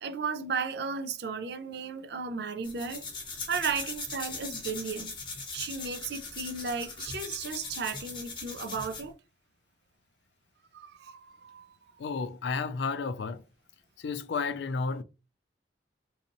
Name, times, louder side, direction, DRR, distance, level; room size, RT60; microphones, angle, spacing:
voice 1, 0.0-3.0 3.5-5.1 5.5-9.1 10.7-11.7, right 5 dB, 65° right, 0.5 m, -34 dB
sound 1, 2.6-9.1, left 4 dB, 30° left, 1.1 m, -40 dB
voice 2, 12.0-13.4 14.0-15.0, left 4 dB, 75° left, 0.4 m, -32 dB
3.9 x 2.8 x 2.6 m
head